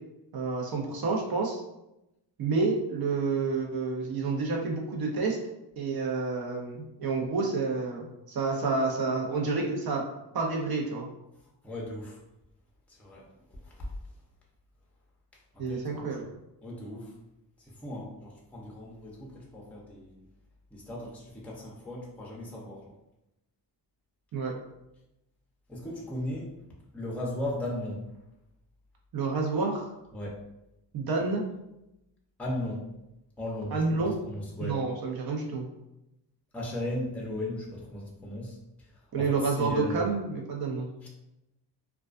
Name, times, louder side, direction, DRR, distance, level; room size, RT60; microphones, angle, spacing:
voice 1, 0.3-1.6 2.4-5.4 5.8-10.0 10.3-11.1 15.6-16.3 24.3-24.5 29.1-29.9 30.9-31.5 33.7-34.1 34.6-35.6 39.1-40.9, right 4 dB, 55° right, 0 dB, 0.7 m, -29 dB
voice 2, 11.6-12.2 12.9-13.9 15.5-15.8 16.6-17.1 17.6-20.2 20.7-22.9 25.7-26.5 26.9-28.0 30.1-30.4 32.4-32.9 33.4-34.8 36.5-38.9 39.2-40.1 41.0-41.1, left 1 dB, 5° left, -3 dB, 0.5 m, -37 dB
2.3 x 2.2 x 2.4 m, 0.89 s
cardioid pair, 105°, 43 cm